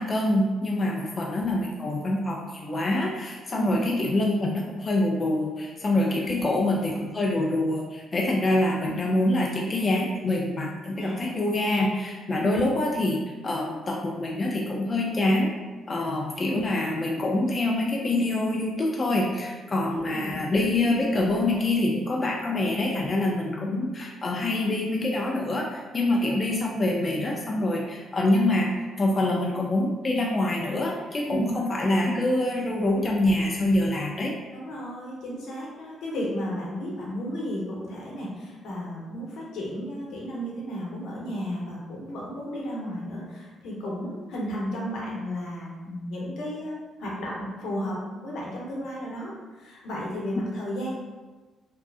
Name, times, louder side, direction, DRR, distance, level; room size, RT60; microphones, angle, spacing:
voice 1, 0.0-15.5 15.9-28.7 29.0-34.3, left 1 dB, 35° left, -1 dB, 0.3 m, -25 dB
voice 2, 6.2-6.9 10.9-11.2 11.5-11.6 12.4-12.6 16.4-16.6 19.9-20.4 31.3-31.9 34.5-50.9, equal, 80° left, -4 dB, 0.7 m, -33 dB
2.6 x 2.3 x 2.3 m, 1.3 s
cardioid pair, 90°, 0 cm